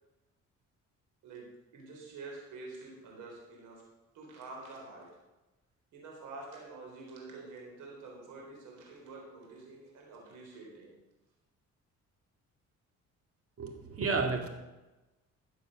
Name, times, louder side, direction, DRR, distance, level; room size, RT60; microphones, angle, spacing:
voice 1, 1.2-3.9 4.1-5.1 5.9-10.9, right 3 dB, 90° right, -1 dB, 4.1 m, -47 dB
voice 2, 13.6-14.5, right 4 dB, 50° right, 4 dB, 2.3 m, -31 dB
13.5 x 7.6 x 6.5 m, 1.1 s
cardioid pair, 90°, 30 cm